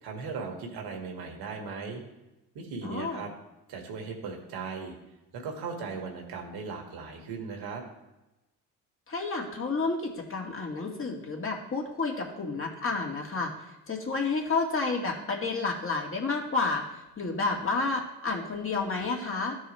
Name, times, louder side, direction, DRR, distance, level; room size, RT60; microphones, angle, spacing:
voice 1, 0.0-2.0 2.6-3.3 3.7-4.9 5.3-7.8, right 5 dB, 70° right, 2 dB, 2.0 m, -37 dB
voice 2, 2.8-3.3 9.1-19.6, left 3 dB, 30° left, 0 dB, 2.1 m, -30 dB
13.0 x 4.7 x 3.3 m, 0.97 s
supercardioid pair, 75°, 40 cm